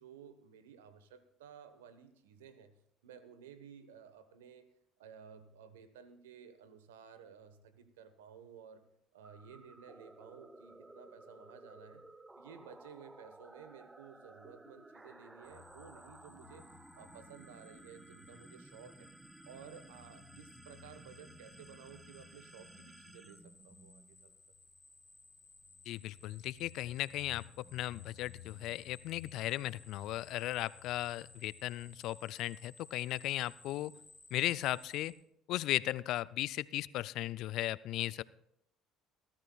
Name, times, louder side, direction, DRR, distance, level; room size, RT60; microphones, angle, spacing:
voice 1, 0.0-2.7 3.0-4.6 5.0-8.8 9.1-12.0 12.4-16.6 16.9-19.1 19.4-24.3, right 7 dB, 85° right, 11 dB, 1.1 m, -55 dB
sound 1, 9.2-24.4, right 2 dB, 20° right, 1.0 m, -56 dB
sound 2, 15.4-35.1, left 5 dB, 5° left, 5.1 m, -58 dB
voice 2, 25.9-27.4 27.7-33.9 34.3-35.1 35.5-38.2, left 15 dB, 65° left, 19 dB, 0.4 m, -36 dB
22.5 x 13.0 x 2.3 m, 0.74 s
hypercardioid pair, 65°, 0 cm